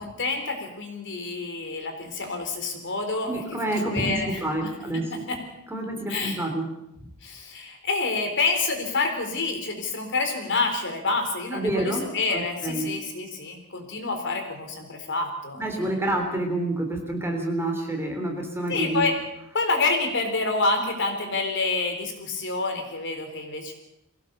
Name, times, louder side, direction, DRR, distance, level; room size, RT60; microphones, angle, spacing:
voice 1, 0.0-3.4 3.9-4.4 5.3-5.4 6.1-6.4 7.2-15.9 18.7-19.1 19.5-23.7, left 3 dB, 55° left, 5 dB, 3.9 m, -28 dB
voice 2, 3.3-5.2 5.7-6.7 11.5-12.9 15.6-19.1, right 1 dB, 10° right, 2 dB, 3.6 m, -28 dB
22.5 x 17.0 x 6.8 m, 0.82 s
head